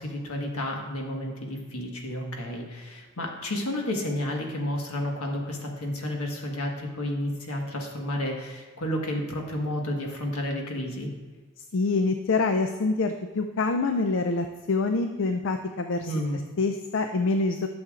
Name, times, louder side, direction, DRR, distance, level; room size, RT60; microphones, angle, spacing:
voice 1, 0.0-11.1 16.0-16.4, left 1 dB, 90° left, 1 dB, 1.4 m, -31 dB
voice 2, 11.6-16.1 16.6-17.7, left 3 dB, 60° left, 7 dB, 0.4 m, -26 dB
12.0 x 7.0 x 2.4 m, 1.4 s
head